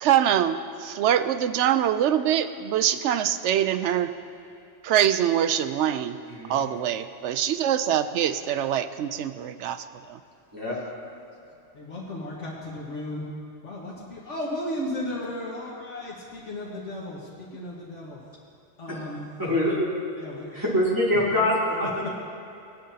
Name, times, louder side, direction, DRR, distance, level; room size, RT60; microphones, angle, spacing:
voice 1, 0.0-4.1 4.8-6.2 6.5-9.8 10.1-10.2, right 10 dB, 75° right, 11 dB, 0.9 m, -24 dB
voice 2, 11.7-13.3 13.6-18.2 18.8-19.2 20.1-20.7 21.1-21.2 22.0-22.1, left 1 dB, 80° left, -5 dB, 1.9 m, -35 dB
voice 3, 19.4-19.9 20.5-22.1, left 1 dB, 15° right, -8 dB, 3.1 m, -24 dB
18.5 x 11.5 x 2.8 m, 2.8 s
omnidirectional pair, 1.2 m